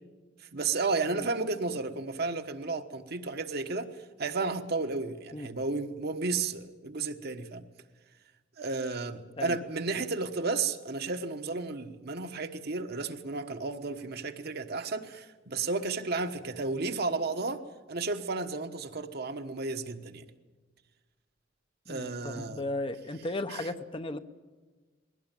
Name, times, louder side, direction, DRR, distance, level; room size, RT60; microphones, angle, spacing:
voice 1, 0.5-7.6 8.6-17.6 17.9-20.2 21.9-22.6 23.5-23.7, right 3 dB, 55° right, 7 dB, 1.2 m, -33 dB
voice 2, 21.9-24.2, left 2 dB, 30° left, 10 dB, 0.8 m, -36 dB
21.5 x 17.5 x 9.1 m, 1.3 s
head